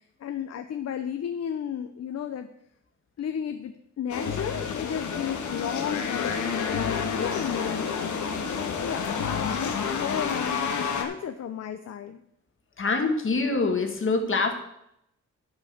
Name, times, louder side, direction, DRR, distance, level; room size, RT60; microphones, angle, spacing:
voice 1, 0.0-2.5 3.2-8.2 8.8-12.2, left 8 dB, 60° left, 8 dB, 0.7 m, -34 dB
sound 1, 4.1-11.0, left 6 dB, 85° left, 1.5 m, -29 dB
voice 2, 12.8-14.5, left 3 dB, 45° left, 4 dB, 1.8 m, -25 dB
12.0 x 5.2 x 6.6 m, 0.77 s
wide cardioid pair, 125°, 29 cm